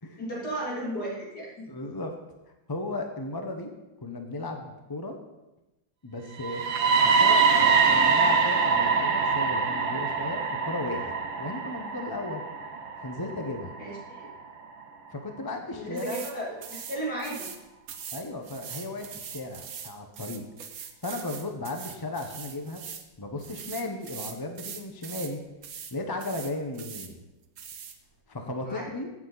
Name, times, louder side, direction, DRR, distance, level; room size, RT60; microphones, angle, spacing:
voice 1, 0.2-1.7 13.8-14.3 15.7-17.5 28.6-28.8, right 1 dB, 55° left, -5 dB, 3.8 m, -34 dB
voice 2, 1.7-2.1 2.7-3.7 4.0-5.2 6.0-6.7 7.0-12.4 13.0-13.7 15.1-16.2 18.1-20.5 21.0-22.8 23.2-25.4 25.9-27.2 28.3-29.1, left 2 dB, 20° left, 4 dB, 0.6 m, -35 dB
sound 1, 6.4-14.3, right 5 dB, 80° right, 1.7 m, -24 dB
sound 2, 16.0-16.3 16.6-17.6 17.9-23.1 23.4-25.3 25.6-25.9 26.2-27.1 27.6-28.0, right 7 dB, 55° right, 1.2 m, -41 dB
16.5 x 7.4 x 4.1 m, 1.0 s
omnidirectional pair, 2.1 m